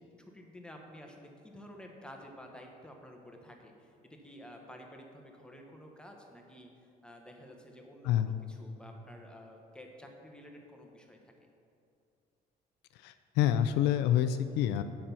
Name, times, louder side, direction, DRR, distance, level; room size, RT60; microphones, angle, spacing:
voice 1, 0.0-6.7 7.0-11.3, equal, 5° left, 1 dB, 1.1 m, -51 dB
voice 2, 8.0-8.4 13.0-14.8, left 11 dB, 90° left, 10 dB, 0.4 m, -27 dB
7.5 x 6.0 x 6.9 m, 2.5 s
cardioid pair, 110°, 17 cm